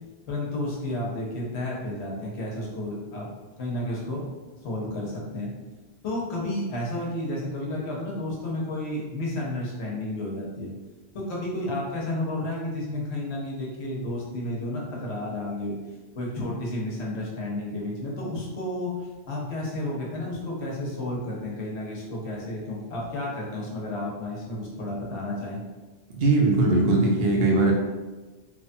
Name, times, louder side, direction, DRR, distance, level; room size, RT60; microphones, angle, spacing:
voice 1, 0.3-3.3 3.6-4.2 4.6-5.5 6.0-10.7 11.1-15.8 16.1-18.9 19.3-25.6, left 1 dB, 90° left, -3 dB, 1.1 m, -31 dB
voice 2, 26.1-27.7, right 2 dB, 70° right, -1 dB, 0.8 m, -20 dB
3.0 x 2.2 x 2.6 m, 1.2 s
omnidirectional pair, 1.1 m